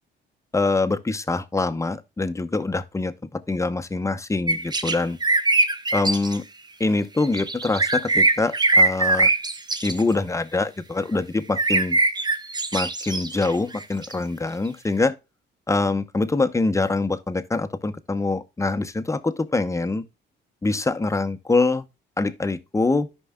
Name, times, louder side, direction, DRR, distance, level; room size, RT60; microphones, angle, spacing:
voice 1, 0.5-5.2 5.9-6.4 6.8-9.3 9.8-12.0 12.7-15.1 15.7-20.0 20.6-21.8 22.2-23.1, left 3 dB, 15° left, 0.8 m, -24 dB
sound 1, 4.5-5.0 5.2-6.4 7.2-10.1 11.6-14.1, right 2 dB, 20° right, 0.8 m, -21 dB
13.5 x 5.3 x 2.2 m
cardioid pair, 90°, 20 cm